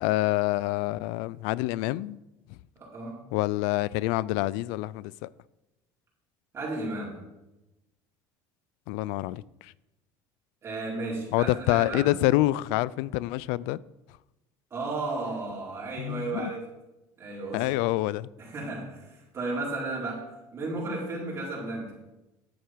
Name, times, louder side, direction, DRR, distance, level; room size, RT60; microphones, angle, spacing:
voice 1, 0.0-2.2 3.3-5.3 8.9-9.7 11.3-13.8 16.0-16.5 17.5-18.3, left 17 dB, 80° left, 0.4 m, -27 dB
voice 2, 2.8-3.2 6.5-7.2 10.6-12.1 14.7-16.7 17.2-17.7 18.4-21.9, right 2 dB, 30° right, 4.4 m, -34 dB
10.0 x 8.1 x 4.6 m
cardioid pair, 120°, 9 cm